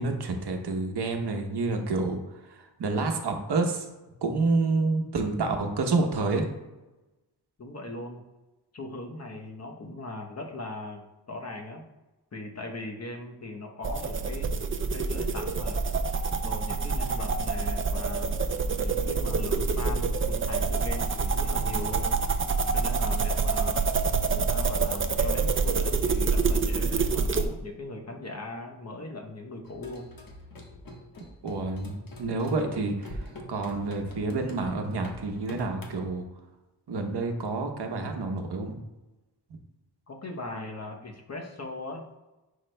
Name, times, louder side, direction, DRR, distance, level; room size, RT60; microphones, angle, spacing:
voice 1, 0.0-2.2 2.8-3.8 4.2-6.4 31.4-33.2 33.5-36.2 36.9-38.8, right 3 dB, 65° right, 3 dB, 1.0 m, -28 dB
voice 2, 7.6-8.2 8.7-11.0 11.3-11.8 12.3-14.5 14.9-15.8 16.4-18.4 18.8-22.2 22.7-23.8 24.3-30.1 40.1-42.2, left 2 dB, 40° left, 2 dB, 0.9 m, -39 dB
sound 1, 13.8-27.5, right 4 dB, 30° right, 0.4 m, -27 dB
sound 2, 29.6-36.1, left 1 dB, 55° left, 1.3 m, -45 dB
10.5 x 4.7 x 2.2 m, 1.1 s
wide cardioid pair, 125°, 42 cm